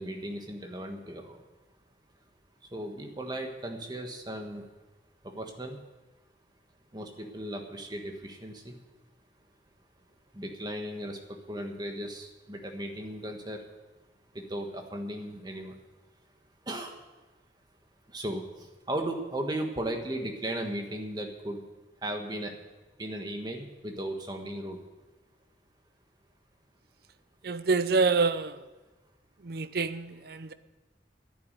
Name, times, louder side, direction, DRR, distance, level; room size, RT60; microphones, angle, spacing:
voice 1, 0.0-1.4 2.7-4.7 5.2-5.8 6.9-8.7 10.3-11.2 11.5-13.6 14.3-15.8 16.7-17.0 18.1-21.6 22.0-22.5 23.0-24.8, right 1 dB, 20° right, 4 dB, 1.5 m, -36 dB
voice 2, 27.4-28.6 29.4-30.5, right 4 dB, 55° right, 13 dB, 0.6 m, -27 dB
11.0 x 9.6 x 9.1 m, 1.2 s
head